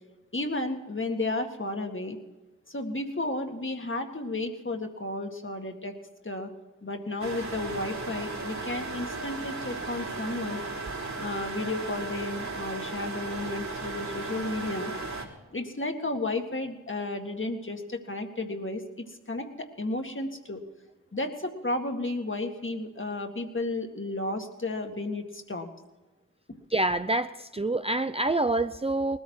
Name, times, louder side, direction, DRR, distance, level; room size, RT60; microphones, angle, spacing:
voice 1, 0.3-2.2 2.7-5.9 6.2-6.5 6.8-10.6 11.2-14.9 15.5-18.8 19.3-20.6 21.1-25.7, left 2 dB, 40° left, 4 dB, 2.1 m, -33 dB
sound 1, 7.2-15.2, right 3 dB, 60° right, 3.3 m, -36 dB
voice 2, 26.7-29.2, right 2 dB, 20° right, 10 dB, 0.5 m, -27 dB
19.5 x 13.5 x 4.8 m, 1.1 s
cardioid pair, 40°, 32 cm